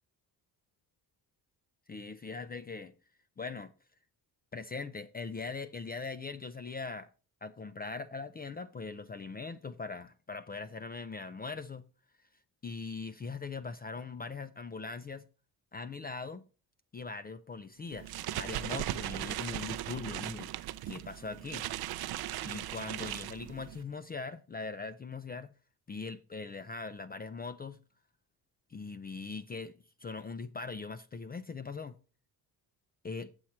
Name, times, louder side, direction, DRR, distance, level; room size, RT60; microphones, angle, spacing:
voice 1, 1.9-2.9 3.4-3.7 4.5-7.1 7.4-11.8 12.6-15.2 15.7-16.4 16.9-20.5 20.9-21.7 22.4-25.5 25.9-27.8 28.7-29.7 30.0-32.0 33.0-33.3, left 4 dB, 25° left, 0.4 m, -41 dB
sound 1, 17.9-23.8, right 13 dB, 70° right, 0.6 m, -38 dB
8.0 x 7.3 x 4.3 m
cardioid pair, 135°, 39 cm